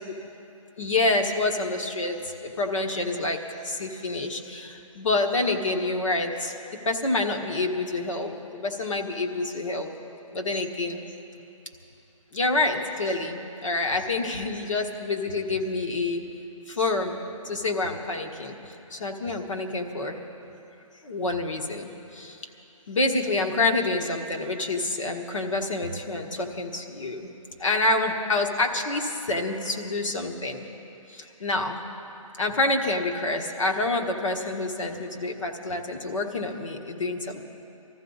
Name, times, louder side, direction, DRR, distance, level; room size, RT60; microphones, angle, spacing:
voice 1, 0.8-3.4 3.6-6.5 6.8-9.9 10.3-11.0 12.3-16.3 16.7-17.2 17.4-20.2 21.0-22.4 22.9-27.3 27.6-30.7 31.1-31.8 32.4-37.4, left 2 dB, 65° left, 2 dB, 1.5 m, -27 dB
20.5 x 14.5 x 4.0 m, 2.8 s
hypercardioid pair, 175°, 18 cm